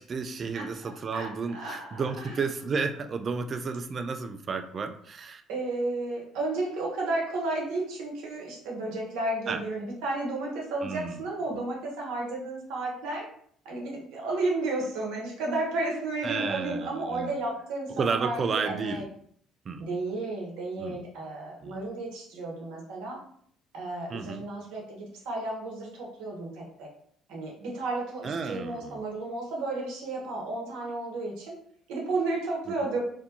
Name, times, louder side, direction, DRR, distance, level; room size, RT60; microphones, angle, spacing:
voice 1, 0.0-5.4 9.5-9.6 10.8-11.2 16.2-17.3 18.0-19.1 19.7-19.8 20.8-21.0 21.6-21.8 24.1-24.4 28.2-29.0, right 5 dB, 45° right, 8 dB, 0.3 m, -32 dB
voice 2, 0.5-2.4 5.5-13.3 13.6-19.1 19.8-23.2 23.7-26.9 27.3-31.5 31.9-33.0, right 2 dB, 75° right, -1 dB, 0.8 m, -33 dB
2.5 x 2.1 x 2.8 m, 0.62 s
hypercardioid pair, 60°, 0 cm